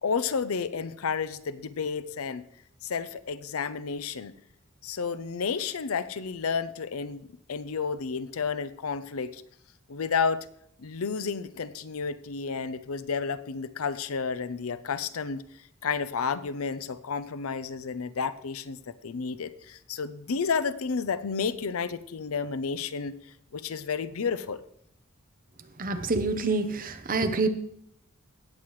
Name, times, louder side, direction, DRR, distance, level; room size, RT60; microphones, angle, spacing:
voice 1, 0.0-2.4 2.8-4.3 4.8-9.4 9.9-10.5 10.8-15.4 15.8-23.2 23.5-24.6, left 5 dB, 75° left, 13 dB, 0.6 m, -31 dB
voice 2, 25.8-27.5, right 3 dB, 40° right, 8 dB, 0.9 m, -27 dB
17.0 x 7.6 x 3.2 m, 0.71 s
head